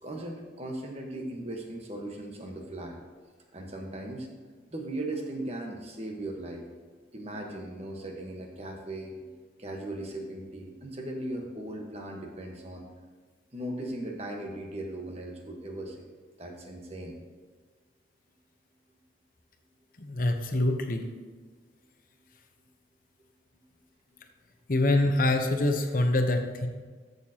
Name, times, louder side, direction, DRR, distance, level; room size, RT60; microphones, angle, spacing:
voice 1, 0.0-3.0 3.5-4.3 4.7-6.7 7.1-12.9 13.5-16.1 16.4-17.2, right 1 dB, 35° right, 1 dB, 1.2 m, -38 dB
voice 2, 20.0-21.0 24.7-26.7, left 2 dB, 50° left, 5 dB, 0.8 m, -25 dB
14.0 x 6.6 x 2.9 m, 1.4 s
head